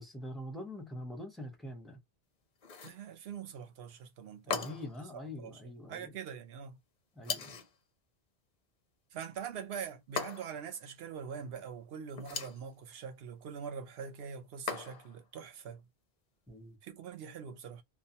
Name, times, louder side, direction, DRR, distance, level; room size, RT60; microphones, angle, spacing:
voice 1, 0.0-2.0 4.4-6.1 7.2-7.6 16.5-16.8, left 1 dB, ahead, 0.5 m, -44 dB
sound 1, 2.6-3.1 4.5-5.0 7.2-7.8 10.2-10.7 12.1-12.6 14.7-15.2, left 5 dB, 50° left, 0.6 m, -38 dB
voice 2, 2.8-4.7 5.1-5.6 5.9-6.8 9.1-15.8 16.8-17.8, right 7 dB, 70° right, 0.8 m, -43 dB
2.5 x 2.1 x 2.7 m
omnidirectional pair, 1.1 m